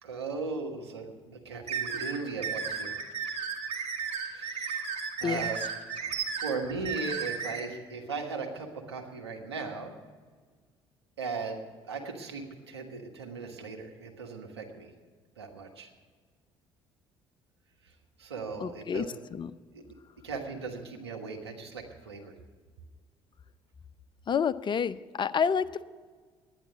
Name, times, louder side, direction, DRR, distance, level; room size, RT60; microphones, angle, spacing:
voice 1, 0.0-2.9 4.2-4.9 5.2-5.8 6.4-9.9 11.2-14.9 15.4-15.9 17.8-17.9 18.2-19.2 19.7-19.8 20.2-22.3, right 4 dB, 90° right, 2 dB, 1.3 m, -38 dB
sound 1, 1.7-7.6, right 6 dB, 55° right, 2.2 m, -34 dB
voice 2, 18.6-19.1 19.3-19.5 24.3-25.8, left 7 dB, 35° left, 13 dB, 0.6 m, -29 dB
11.0 x 10.0 x 7.9 m, 1.5 s
hypercardioid pair, 55°, 13 cm